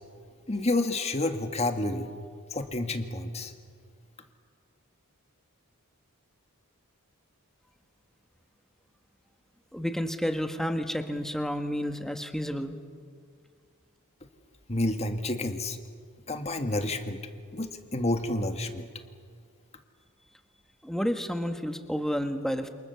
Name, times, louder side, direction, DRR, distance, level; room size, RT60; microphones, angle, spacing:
voice 1, 0.5-2.1 2.5-3.5 14.7-15.8 16.3-17.2 17.5-18.9, left 2 dB, 30° left, 6 dB, 1.9 m, -29 dB
voice 2, 9.7-12.8 20.8-22.7, equal, ahead, 6 dB, 1.6 m, -30 dB
28.5 x 28.5 x 7.1 m, 2.1 s
head